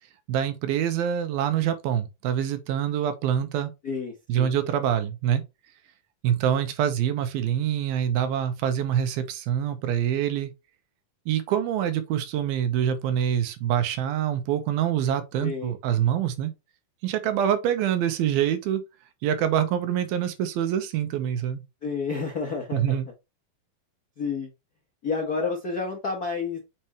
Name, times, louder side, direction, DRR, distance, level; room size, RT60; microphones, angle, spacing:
voice 1, 0.3-3.7 4.3-5.4 6.2-10.5 11.3-16.5 17.0-18.8 19.2-21.6 22.7-23.1, right 9 dB, 85° right, 2.9 m, -25 dB
voice 2, 3.8-4.5 15.4-15.7 21.8-22.8 24.2-24.5 25.0-26.6, left 4 dB, 85° left, 0.8 m, -30 dB
7.3 x 4.4 x 3.0 m
omnidirectional pair, 4.1 m